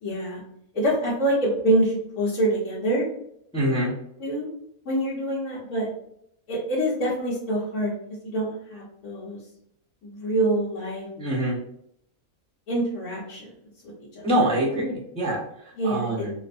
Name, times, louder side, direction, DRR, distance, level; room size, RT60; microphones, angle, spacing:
voice 1, 0.0-0.4 0.7-3.0 4.2-4.5 4.8-5.9 6.5-7.9 8.2-9.4 10.0-11.1 12.7-13.5 14.1-14.3 15.7-16.2, right 1 dB, 80° left, -8 dB, 1.6 m, -25 dB
voice 2, 3.5-3.9 11.2-11.6 14.2-15.4 15.8-16.3, right 1 dB, 5° left, -4 dB, 0.4 m, -24 dB
4.5 x 2.1 x 2.5 m, 0.72 s
omnidirectional pair, 1.6 m